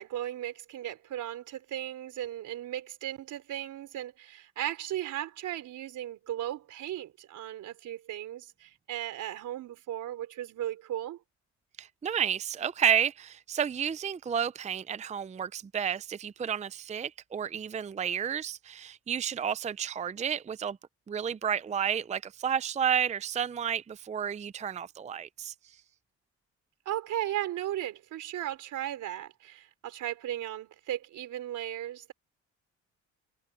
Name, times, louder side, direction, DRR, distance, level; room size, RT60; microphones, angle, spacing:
voice 1, 0.0-11.2 26.9-32.1, right 12 dB, 80° right, 4.0 m, -36 dB
voice 2, 11.8-20.8 21.1-25.5, right 8 dB, 25° right, 0.5 m, -31 dB
cardioid pair, 90°, 30 cm